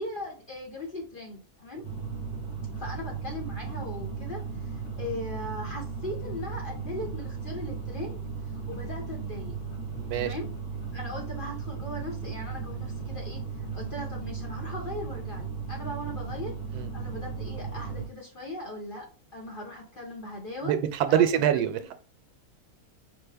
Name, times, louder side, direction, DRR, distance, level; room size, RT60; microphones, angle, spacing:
voice 1, 0.0-1.8 2.7-9.5 10.1-10.5 10.9-19.0 19.3-20.7 21.1-21.9, left 1 dB, 45° left, 0.8 m, -39 dB
sound 1, 1.8-18.1, right 5 dB, 90° left, 1.8 m, -36 dB
voice 2, 9.9-10.3 16.7-16.9 20.6-21.9, right 10 dB, 90° right, 1.1 m, -25 dB
5.2 x 2.0 x 3.3 m
omnidirectional pair, 1.6 m